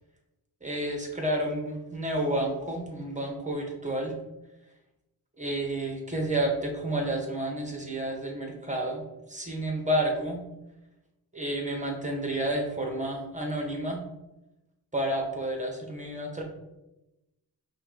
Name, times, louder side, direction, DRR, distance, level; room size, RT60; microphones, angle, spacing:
voice 1, 0.6-4.1 5.4-10.4 11.3-14.0 14.9-16.4, right 1 dB, 20° right, 1 dB, 1.1 m, -30 dB
5.6 x 2.4 x 3.9 m, 0.95 s
cardioid pair, 70°, 41 cm